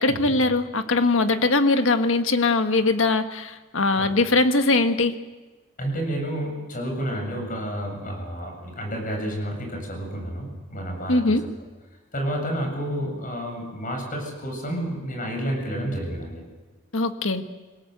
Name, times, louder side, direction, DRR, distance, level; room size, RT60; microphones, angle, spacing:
voice 1, 0.0-5.1 11.1-11.4 16.9-17.4, left 3 dB, 75° left, 7 dB, 1.6 m, -21 dB
voice 2, 5.8-11.4 12.1-16.4, equal, 45° left, 2 dB, 7.7 m, -30 dB
27.0 x 18.0 x 8.0 m, 1.2 s
head